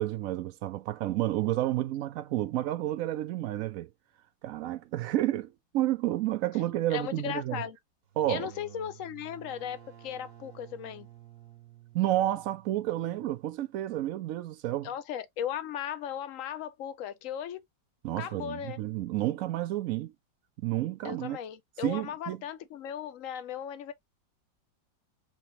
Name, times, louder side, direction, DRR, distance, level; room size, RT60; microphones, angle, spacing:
voice 1, 0.0-3.9 4.4-7.6 8.2-8.5 11.9-14.9 18.0-20.1 20.6-21.4 21.8-22.4, right 14 dB, 85° right, 0.7 m, -30 dB
voice 2, 6.9-7.8 8.3-11.1 14.8-17.6 18.2-18.8 21.0-23.9, left 9 dB, 70° left, 0.7 m, -37 dB
sound 1, 8.1-13.6, right 11 dB, 60° right, 1.3 m, -52 dB
5.9 x 2.8 x 3.0 m
omnidirectional pair, 2.0 m